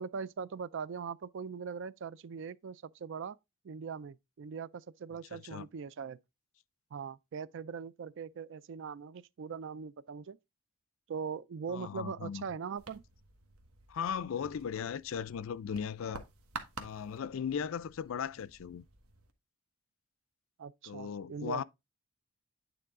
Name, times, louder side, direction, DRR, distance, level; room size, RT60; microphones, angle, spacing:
voice 1, 0.0-3.4 3.6-6.2 6.9-10.4 11.1-13.0 20.6-21.6, right 6 dB, 55° right, 0.3 m, -41 dB
voice 2, 5.3-5.7 11.7-12.4 13.9-16.2 16.8-18.8 20.8-21.6, left 7 dB, 65° left, 0.4 m, -37 dB
sound 1, 12.8-19.3, right 3 dB, 75° right, 1.2 m, -50 dB
9.1 x 3.8 x 3.6 m
head